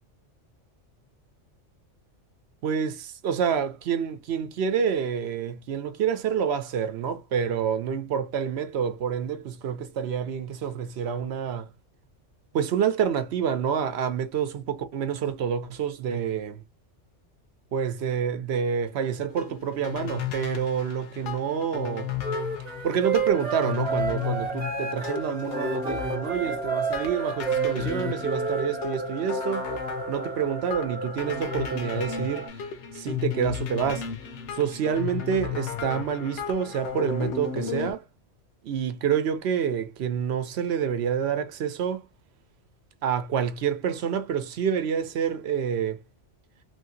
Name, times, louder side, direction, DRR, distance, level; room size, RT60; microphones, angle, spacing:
voice 1, 2.6-11.7 12.5-16.6 17.7-22.1 22.8-29.7 30.1-34.1 34.5-38.1 38.6-42.1 43.0-46.0, right 7 dB, 65° right, 0.8 m, -28 dB
sound 1, 19.3-37.9, left 8 dB, 70° left, 1.0 m, -34 dB
Wind instrument woodwind instrument, 22.2-28.7, right 6 dB, 35° right, 1.1 m, -31 dB
sound 2, 23.3-32.5, right 2 dB, 15° right, 0.3 m, -37 dB
3.1 x 2.7 x 2.6 m
omnidirectional pair, 1.3 m